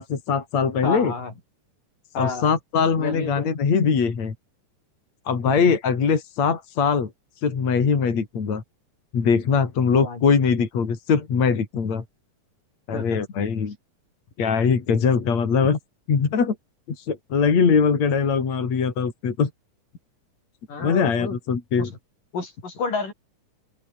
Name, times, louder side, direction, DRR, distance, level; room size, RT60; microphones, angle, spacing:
voice 1, 0.0-1.1 2.2-4.3 5.3-7.1 7.4-8.6 9.1-12.0 12.9-13.8 14.4-15.8 16.1-16.5 17.0-19.5 20.8-21.9, left 5 dB, 55° left, 4.7 m, -21 dB
voice 2, 0.8-1.3 2.1-2.5 3.0-3.5 5.4-5.6 9.9-10.2 12.9-13.2 20.7-21.4 21.8-21.9 22.3-23.1, left 4 dB, 80° left, 8.3 m, -30 dB
open air
omnidirectional pair, 3.8 m